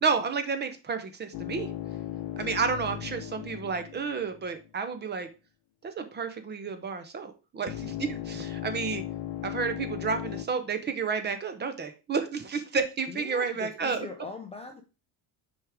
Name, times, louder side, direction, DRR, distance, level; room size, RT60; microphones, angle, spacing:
voice 1, 0.0-1.7 2.4-5.3 5.8-9.0 9.4-14.1, right 5 dB, 25° right, 0.7 m, -31 dB
sound 1, 1.3-4.7 7.7-10.5, left 12 dB, 85° left, 0.8 m, -37 dB
voice 2, 13.1-14.8, left 4 dB, 15° left, 0.4 m, -41 dB
6.1 x 4.9 x 3.5 m
cardioid pair, 175°, 43 cm